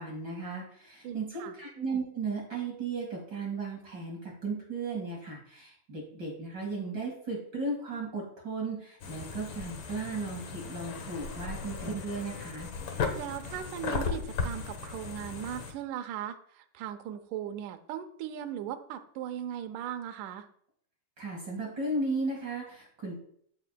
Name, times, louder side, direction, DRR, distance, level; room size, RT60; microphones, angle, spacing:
voice 1, 0.0-12.7 21.2-23.2, right 3 dB, 40° right, -2 dB, 2.0 m, -35 dB
voice 2, 1.0-1.5 13.2-20.5, right 10 dB, 75° right, 8 dB, 2.1 m, -38 dB
sound 1, 9.0-15.7, left 5 dB, 75° left, 1.1 m, -36 dB
14.5 x 5.8 x 2.2 m, 0.62 s
omnidirectional pair, 3.9 m